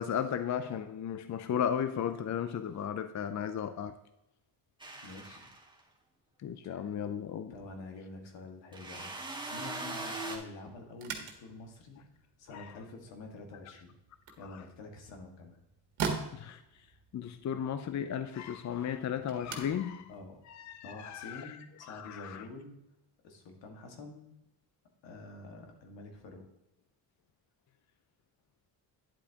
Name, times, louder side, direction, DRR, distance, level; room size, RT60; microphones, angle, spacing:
voice 1, 0.0-4.0 6.4-7.5 12.5-12.7 14.5-14.6 16.3-16.8 17.1-20.0 20.5-22.4, left 8 dB, 40° left, 0.6 m, -35 dB
sound 1, 4.8-5.8 8.7-10.4, right 2 dB, 10° right, 2.0 m, -40 dB
voice 2, 5.0-5.5 6.6-7.0 7.5-9.2 9.5-12.0 12.4-13.9 14.4-15.6 20.1-20.4 20.8-22.8 23.2-24.3 25.0-26.5, left 2 dB, 75° left, 2.0 m, -47 dB
sound 2, 10.9-21.4, right 5 dB, 85° right, 1.7 m, -44 dB
10.0 x 8.2 x 2.9 m
cardioid pair, 85°, 44 cm